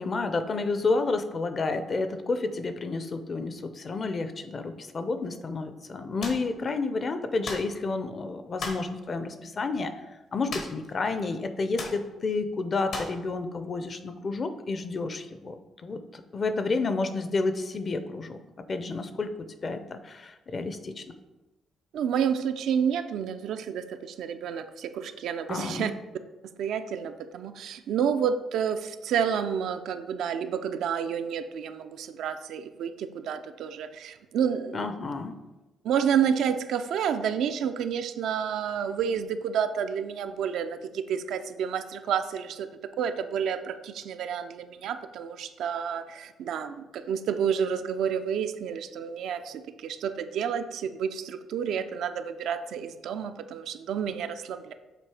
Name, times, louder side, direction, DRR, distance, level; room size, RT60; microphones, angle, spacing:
voice 1, 0.0-9.9 10.3-18.4 18.7-19.3 19.6-21.0 25.5-25.9 34.7-35.4, left 3 dB, 40° left, 9 dB, 0.6 m, -30 dB
sound 1, 6.2-6.5 7.4-7.7 8.6-8.9 10.5-10.9 11.2-11.3 11.8-12.0 12.9-13.2, left 3 dB, 70° left, 1.1 m, -36 dB
voice 2, 21.9-25.9 26.6-34.8 35.8-42.7 43.0-54.7, right 7 dB, 75° right, 9 dB, 0.4 m, -30 dB
7.5 x 2.8 x 4.8 m, 1.1 s
cardioid pair, 90°, 0 cm